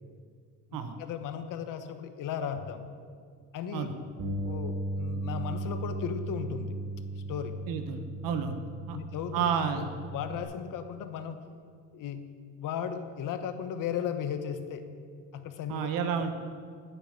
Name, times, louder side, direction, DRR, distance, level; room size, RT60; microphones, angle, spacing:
voice 1, 1.0-2.8 3.5-3.9 4.4-6.7 7.3-7.6 8.3-8.4 8.9-9.5 9.8-9.9 10.1-11.4 11.9-12.2 12.6-14.8 15.3-15.9, left 8 dB, 65° left, 8 dB, 1.2 m, -35 dB
Bass guitar, 4.2-10.4, right 2 dB, 55° right, 3.4 m, -36 dB
voice 2, 7.7-8.6 8.9-9.0 9.3-9.9 15.7-16.3, right 7 dB, 75° right, 7 dB, 1.1 m, -30 dB
10.5 x 7.0 x 8.8 m, 2.1 s
cardioid pair, 115°, 34 cm